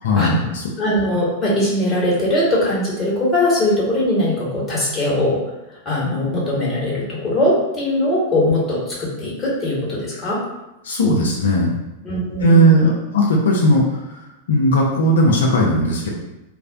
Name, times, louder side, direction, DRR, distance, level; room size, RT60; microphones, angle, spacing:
voice 1, 0.0-0.6 10.8-11.7 12.4-14.0 14.5-16.1, equal, 65° left, -2 dB, 0.5 m, -16 dB
voice 2, 0.8-5.4 5.8-10.4 12.0-12.9, left 1 dB, 20° left, -6 dB, 1.2 m, -20 dB
2.4 x 2.1 x 3.7 m, 0.97 s
figure-of-eight pair, 95°, 0 cm